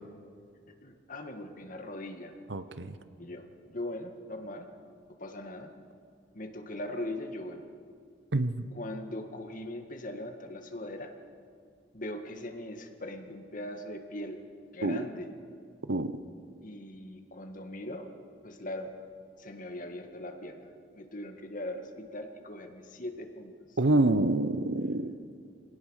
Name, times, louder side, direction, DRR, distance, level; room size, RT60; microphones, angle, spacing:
voice 1, 0.8-2.3 3.2-4.7 5.2-5.7 6.3-7.6 8.7-11.1 11.9-14.4 14.7-15.3 16.6-18.1 18.4-18.9 19.4-23.8, left 1 dB, 45° left, 5 dB, 1.9 m, -40 dB
voice 2, 2.5-3.0 8.3-8.7 14.8-15.0 15.9-16.1 23.8-25.1, right 2 dB, 75° right, 12 dB, 0.9 m, -27 dB
24.5 x 18.5 x 6.5 m, 2.2 s
head